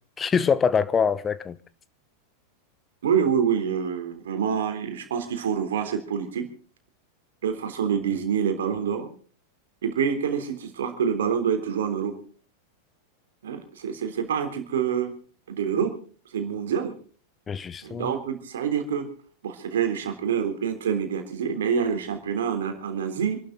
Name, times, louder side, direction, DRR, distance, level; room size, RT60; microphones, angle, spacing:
voice 1, 0.2-1.6 17.5-18.1, left 6 dB, 20° left, 1.0 m, -24 dB
voice 2, 3.0-6.5 7.4-9.1 9.8-12.2 13.4-15.1 15.5-15.9 16.3-16.9 17.8-19.1 19.4-23.4, right 7 dB, 60° right, 3.5 m, -26 dB
26.5 x 12.0 x 3.9 m
figure-of-eight pair, 90°, 0 cm